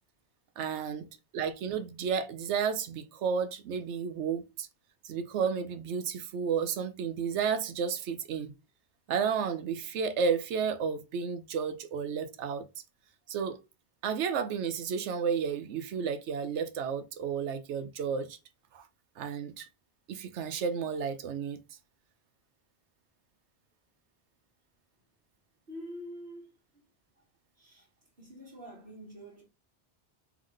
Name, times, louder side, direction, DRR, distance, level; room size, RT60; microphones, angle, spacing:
voice 1, 0.6-1.1 1.3-4.7 5.0-8.5 9.1-12.6 13.3-13.6 14.0-18.4 18.7-18.9 19.2-19.7 20.1-21.6, right 6 dB, 80° right, 0.9 m, -32 dB
voice 2, 25.7-26.8 27.1-27.2 27.5-29.4, equal, 55° right, 1.5 m, -46 dB
3.7 x 3.5 x 3.1 m
omnidirectional pair, 1.2 m